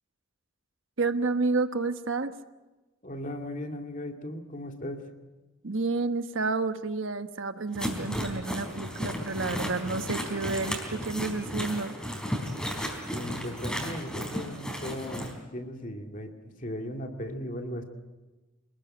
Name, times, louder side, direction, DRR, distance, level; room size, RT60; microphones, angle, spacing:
voice 1, 1.0-2.3 5.6-11.9, right 3 dB, 70° right, 9 dB, 1.2 m, -30 dB
voice 2, 3.0-5.1 13.2-16.3 16.6-17.8, left 1 dB, 40° left, 4 dB, 2.4 m, -37 dB
sound 1, 7.8-15.3, equal, 5° left, 3.8 m, -34 dB
27.0 x 20.0 x 8.8 m, 1.2 s
head